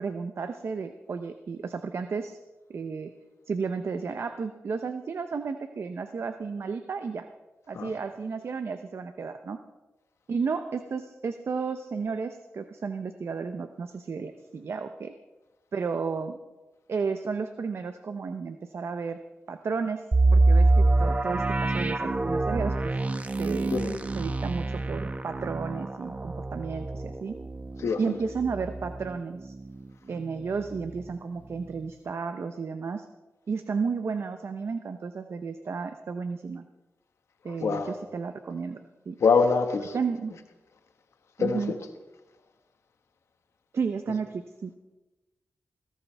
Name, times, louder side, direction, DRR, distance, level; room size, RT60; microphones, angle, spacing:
voice 1, 0.0-2.4 2.7-3.1 3.5-7.3 7.7-9.6 10.3-15.1 15.7-16.4 16.9-19.2 19.5-20.0 20.3-23.0 23.4-23.7 24.2-27.4 28.0-29.5 30.1-33.1 33.5-36.6 37.4-38.8 39.1-39.2 39.9-40.3 41.4-41.7 43.7-44.7, right 5 dB, 65° right, 0.8 m, -32 dB
sound 1, 20.1-29.8 30.2-30.3 30.8-31.0, right 2 dB, 30° right, 1.0 m, -26 dB
voice 2, 37.6-37.9 39.2-39.9 41.4-41.6, left 5 dB, 80° left, 1.6 m, -24 dB
19.5 x 16.5 x 3.5 m
cardioid pair, 65°, 5 cm